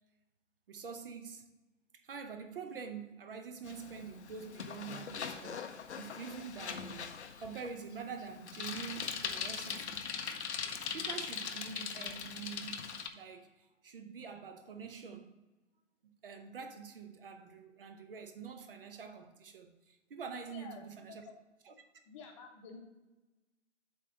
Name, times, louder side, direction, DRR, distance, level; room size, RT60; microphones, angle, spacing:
voice 1, 0.7-1.5 1.9-7.1 7.4-10.0 10.9-15.4 16.2-21.2 21.6-21.7, right 6 dB, 45° right, 0.8 m, -46 dB
Bicycle, 3.6-13.1, left 6 dB, 60° left, 0.7 m, -41 dB
voice 2, 20.5-21.3 22.0-22.9, left 6 dB, 25° left, 0.9 m, -51 dB
7.6 x 3.2 x 6.2 m
figure-of-eight pair, 130°, 38 cm